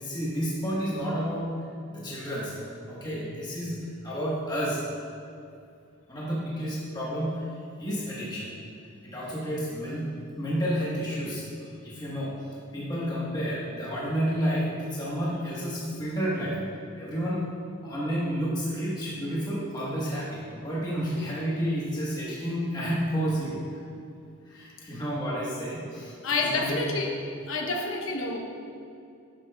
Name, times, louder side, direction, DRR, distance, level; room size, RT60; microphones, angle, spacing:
voice 1, 0.0-1.6 1.9-3.8 4.0-4.8 6.1-8.5 9.0-11.4 11.8-17.5 17.8-23.8 24.5-26.9, equal, 20° left, -7 dB, 1.3 m, -31 dB
voice 2, 26.2-27.1 27.5-28.4, left 3 dB, 65° left, 1 dB, 1.0 m, -28 dB
11.5 x 7.6 x 2.3 m, 2.5 s
head